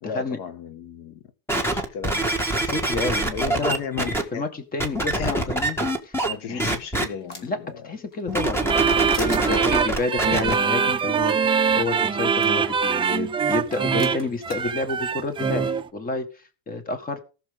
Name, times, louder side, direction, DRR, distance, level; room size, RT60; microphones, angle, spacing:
voice 1, 0.0-1.2 1.7-2.3 3.3-4.5 5.1-5.6 6.3-7.9, left 7 dB, 70° left, 1.8 m, -34 dB
sound 1, 1.5-4.2 4.8-6.3 6.6-7.0 8.3-10.5 11.2-11.3, right 2 dB, 5° left, 1.7 m, -24 dB
voice 2, 2.6-3.8 4.3-5.8 6.0-6.2 6.5-6.6 7.4-7.6 7.8-17.2, left 3 dB, 20° left, 1.7 m, -29 dB
sound 2, 6.3-7.7 8.1-8.9 9.1-9.5 11.0-11.1 11.3-11.4 12.4-12.5 13.5-14.7, left 3 dB, 40° left, 2.8 m, -41 dB
sound 3, 8.6-15.9, right 6 dB, 15° right, 0.5 m, -23 dB
19.0 x 6.7 x 3.7 m
cardioid pair, 155°, 40 cm